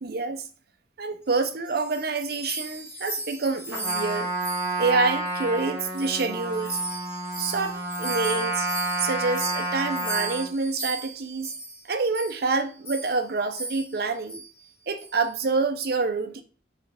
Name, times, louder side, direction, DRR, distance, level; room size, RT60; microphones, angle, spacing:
voice 1, 0.0-0.5 1.0-4.3 4.8-6.8 7.4-8.7 9.0-11.5 11.8-14.4 14.9-16.4, right 4 dB, 60° right, 0.6 m, -27 dB
sound 1, 1.4-5.6 5.9-11.8 12.1-12.4 12.8-13.2 13.5-14.0 14.3-14.5 15.0-15.3, right 2 dB, 15° left, 1.6 m, -36 dB
Trumpet, 3.7-10.5, right 2 dB, 15° right, 1.5 m, -30 dB
4.7 x 3.3 x 3.4 m
head